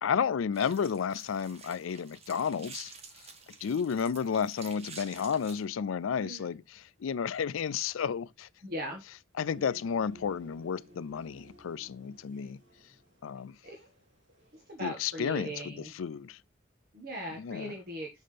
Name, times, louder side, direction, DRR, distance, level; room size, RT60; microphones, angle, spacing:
voice 1, 0.0-2.9 3.6-8.5 9.4-12.6 13.2-13.5 14.8-16.4 17.4-17.7, left 7 dB, 85° left, 0.4 m, -32 dB
sound 1, 0.5-5.6, right 4 dB, 30° right, 1.2 m, -49 dB
voice 2, 8.6-9.0 12.3-12.5 13.6-13.8 14.5-15.9 16.9-18.1, right 1 dB, 50° right, 1.5 m, -39 dB
sound 2, 9.4-14.7, right 1 dB, 65° right, 4.3 m, -57 dB
6.4 x 5.8 x 3.3 m
head